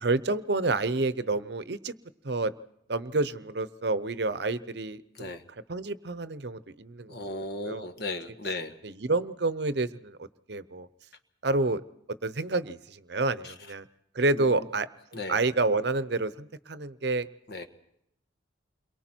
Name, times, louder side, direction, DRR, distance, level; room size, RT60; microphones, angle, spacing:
voice 1, 0.0-1.9 2.2-2.5 2.9-5.3 5.7-7.2 7.7-7.9 8.8-10.2 10.5-10.9 11.4-11.8 12.2-13.8 14.2-14.9 15.1-17.3, right 3 dB, 60° right, 14 dB, 0.8 m, -29 dB
voice 2, 7.1-8.7 13.4-13.5 14.3-14.5 15.1-15.4 17.5-17.7, left 2 dB, 55° left, 8 dB, 1.6 m, -36 dB
29.0 x 23.0 x 4.5 m, 0.76 s
head